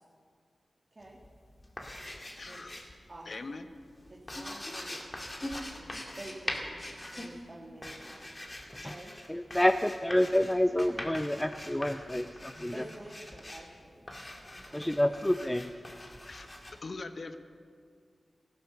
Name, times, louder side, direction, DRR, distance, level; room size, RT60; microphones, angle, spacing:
sound 1, 1.0-3.1 3.3-16.8, left 1 dB, 30° left, 2.1 m, -43 dB
voice 1, 2.4-2.7 3.3-3.7 16.0-16.5 16.8-17.4, left 3 dB, 60° left, 9 dB, 0.9 m, -42 dB
voice 2, 4.1-5.1 5.8-6.8 7.1-8.3 8.7-9.2 12.7-14.1 14.5-15.1, right 1 dB, 45° right, -3 dB, 2.1 m, -49 dB
voice 3, 9.3-12.7 14.7-15.7, left 1 dB, 15° left, 9 dB, 0.5 m, -28 dB
15.0 x 12.0 x 6.7 m, 2.1 s
cardioid pair, 45°, 0 cm